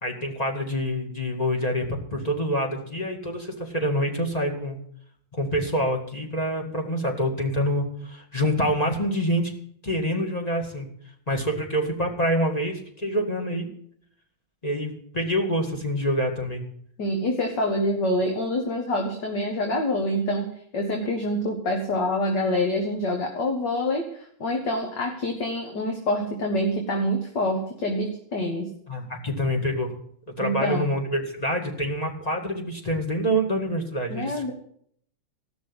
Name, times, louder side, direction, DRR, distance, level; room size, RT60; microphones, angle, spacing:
voice 1, 0.0-4.8 5.3-9.5 9.8-10.9 11.3-13.7 14.6-16.6 28.9-30.0 30.4-34.5, equal, 20° left, 1 dB, 2.0 m, -26 dB
voice 2, 17.0-28.7 30.4-30.9 34.1-34.5, left 1 dB, 55° left, 2 dB, 2.1 m, -26 dB
15.0 x 6.3 x 9.7 m, 0.66 s
omnidirectional pair, 2.3 m